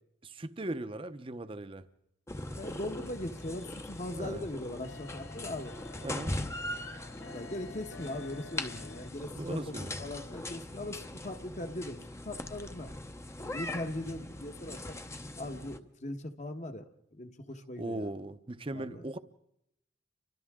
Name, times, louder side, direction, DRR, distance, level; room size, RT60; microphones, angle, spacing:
voice 1, 0.2-1.9 4.2-4.5 6.0-6.3 9.3-9.9 17.8-19.2, right 1 dB, 30° right, 0.7 m, -38 dB
sound 1, 2.3-15.8, left 1 dB, 15° left, 0.8 m, -41 dB
voice 2, 2.6-5.8 7.3-12.9 13.4-15.0 15.4-18.1 18.7-19.0, left 1 dB, 40° left, 1.3 m, -40 dB
sound 2, 2.7-9.1, left 6 dB, 85° left, 1.3 m, -53 dB
29.5 x 24.5 x 3.7 m
head